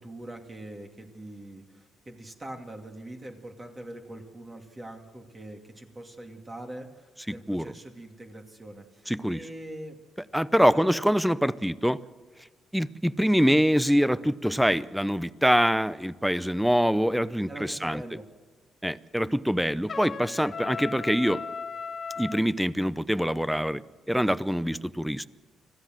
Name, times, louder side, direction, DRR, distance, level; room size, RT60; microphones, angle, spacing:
voice 1, 0.0-10.0 10.7-11.0 17.5-18.3, right 1 dB, 25° right, 3 dB, 2.5 m, -43 dB
voice 2, 7.3-7.7 9.1-9.4 10.3-12.0 12.7-18.0 18.8-21.4 22.2-23.8 24.1-25.3, equal, ahead, 16 dB, 0.7 m, -24 dB
Trumpet, 19.9-22.4, left 5 dB, 40° left, 1.4 m, -36 dB
25.5 x 15.5 x 7.7 m, 1.5 s
cardioid pair, 90°, 0 cm